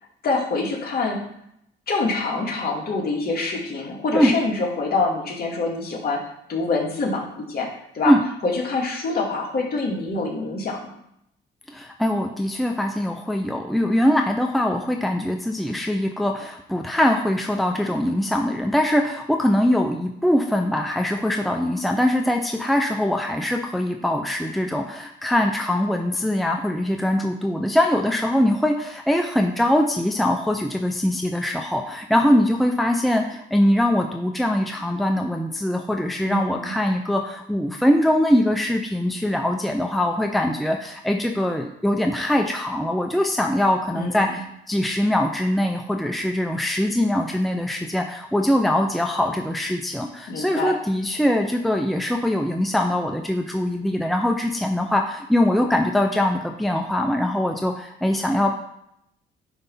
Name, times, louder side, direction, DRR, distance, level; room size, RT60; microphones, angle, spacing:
voice 1, 0.2-1.2 1.9-6.2 6.5-7.7 7.9-8.1 8.4-10.8 36.3-36.7 43.9-44.4 50.3-50.8, left 3 dB, 50° left, -2 dB, 2.4 m, -25 dB
voice 2, 11.7-58.5, left 1 dB, ahead, 2 dB, 0.7 m, -22 dB
9.6 x 3.5 x 5.6 m, 0.76 s
cardioid pair, 90°, 20 cm